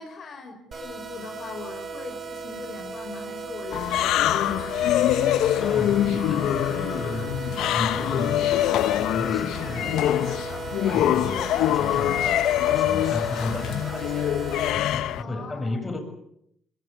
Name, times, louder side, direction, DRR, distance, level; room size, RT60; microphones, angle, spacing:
voice 1, 0.0-5.2 15.2-15.8, left 4 dB, 60° left, 4 dB, 5.4 m, -41 dB
sound 1, 0.7-14.7, right 4 dB, 40° right, 4.8 m, -36 dB
sound 2, 3.7-15.2, left 12 dB, 80° left, 0.9 m, -24 dB
voice 2, 5.6-14.3 14.7-16.0, left 2 dB, 25° left, 6 dB, 7.7 m, -34 dB
22.5 x 22.5 x 8.5 m, 0.74 s
supercardioid pair, 65°, 0 cm